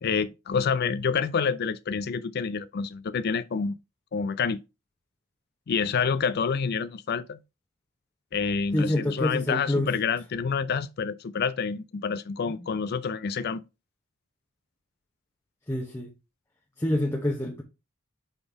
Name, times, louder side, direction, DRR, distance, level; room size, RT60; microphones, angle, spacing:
voice 1, 0.0-3.8 4.1-4.6 5.7-7.4 8.3-13.6, left 5 dB, 50° left, 0.4 m, -28 dB
voice 2, 8.7-9.9 12.5-12.6 15.7-16.1 16.8-17.6, left 1 dB, 15° left, 1.0 m, -27 dB
5.3 x 4.1 x 4.7 m
head